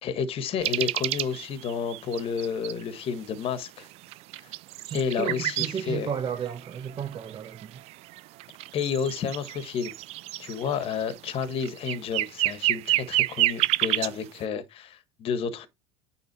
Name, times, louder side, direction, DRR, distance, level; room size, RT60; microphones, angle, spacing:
voice 1, 0.0-3.9 4.9-6.1 8.7-9.9 10.4-15.7, left 6 dB, 45° left, 1.6 m, -30 dB
sound 1, 0.6-2.8 3.4-3.5 3.9-5.8 6.2-14.1, right 17 dB, 50° right, 0.4 m, -29 dB
voice 2, 4.8-7.8, right 8 dB, 35° right, 1.4 m, -33 dB
9.2 x 3.7 x 4.8 m
hypercardioid pair, 90°, 14 cm